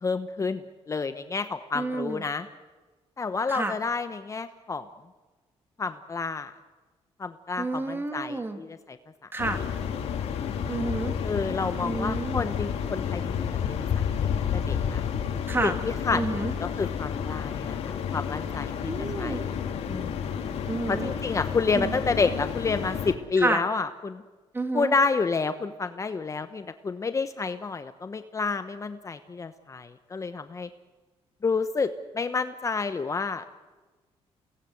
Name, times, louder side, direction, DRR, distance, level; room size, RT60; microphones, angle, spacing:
voice 1, 0.0-2.5 3.2-4.9 5.8-6.5 7.2-9.0 11.2-15.0 15.6-17.8 18.1-18.9 19.2-19.6 19.9-20.3 20.9-24.2 24.7-30.7 31.4-33.5, left 4 dB, 30° left, 10 dB, 1.0 m, -29 dB
voice 2, 1.7-2.2 3.5-3.8 7.6-8.6 9.3-9.6 10.7-11.1 11.8-12.4 15.5-15.7 16.1-16.5 18.9-19.4 20.7-21.1 21.7-22.0 23.4-23.6 24.5-24.9, right 2 dB, 20° right, 7 dB, 2.5 m, -29 dB
sound 1, 9.4-23.1, left 7 dB, 75° left, 2.8 m, -30 dB
29.5 x 18.5 x 7.9 m, 1.2 s
cardioid pair, 115°, 11 cm